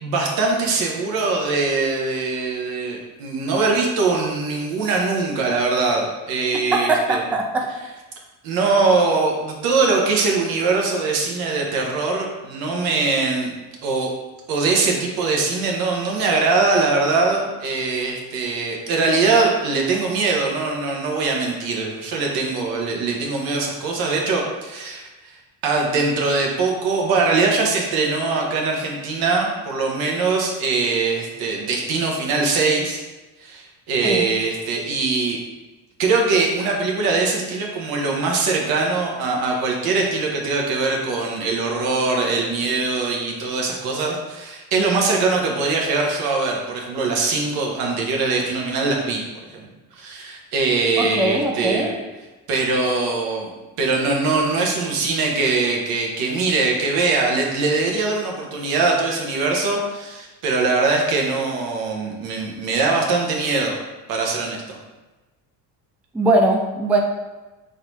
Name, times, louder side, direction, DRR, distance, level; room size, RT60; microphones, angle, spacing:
voice 1, 0.0-7.2 8.4-13.6 13.8-14.1 14.5-33.0 33.4-35.4 36.0-49.2 49.6-49.7 49.9-51.9 52.5-53.5 53.8-63.8 64.1-64.8, right 3 dB, 80° right, 0 dB, 1.1 m, -22 dB
voice 2, 6.7-7.7 34.0-34.3 51.0-51.9 66.1-67.0, right 2 dB, 5° right, 1 dB, 0.3 m, -20 dB
4.0 x 2.7 x 4.6 m, 1.2 s
cardioid pair, 135°, 35 cm